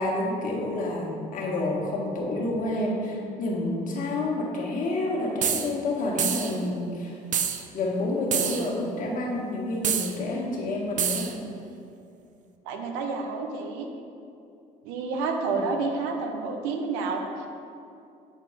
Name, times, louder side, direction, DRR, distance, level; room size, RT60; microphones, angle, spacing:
voice 1, 0.0-7.2 7.7-11.3, left 2 dB, 45° left, -3 dB, 1.5 m, -29 dB
sound 1, 5.4-5.7 6.2-6.6 7.3-7.6 8.3-8.7 9.8-10.1 11.0-11.3, right 8 dB, 45° right, 0.5 m, -26 dB
voice 2, 12.7-13.9 14.8-17.5, right 4 dB, 80° right, 3 dB, 0.7 m, -29 dB
7.6 x 4.1 x 3.5 m, 2.6 s
hypercardioid pair, 65°, 18 cm